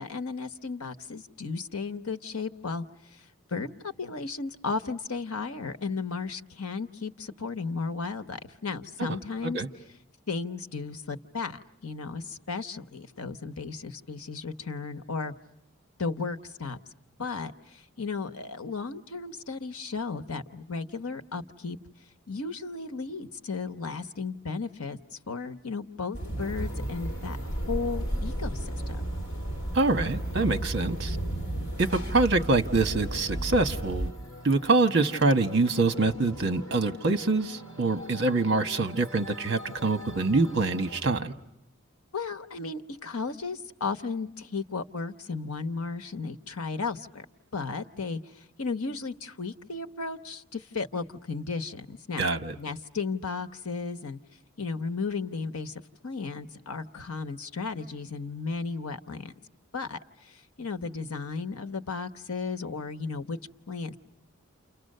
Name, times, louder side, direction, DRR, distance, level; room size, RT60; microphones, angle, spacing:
voice 1, 0.0-2.8 3.1-3.2 3.5-9.6 10.3-15.3 16.0-16.8 17.2-21.8 22.3-25.0 25.3-27.4 27.7-29.0 42.1-47.3 47.5-52.3 52.6-54.2 54.6-59.3 59.7-63.4 63.7-64.0, left 4 dB, 85° left, 10 dB, 1.1 m, -34 dB
sound 1, 26.1-34.1, right 1 dB, 55° left, 2.2 m, -33 dB
sound 2, 26.4-41.2, equal, 15° left, 3.3 m, -44 dB
voice 2, 29.7-31.2 31.8-34.1 34.4-41.3 52.2-52.5, right 3 dB, 50° right, 8 dB, 1.2 m, -25 dB
29.5 x 29.0 x 6.6 m, 0.81 s
head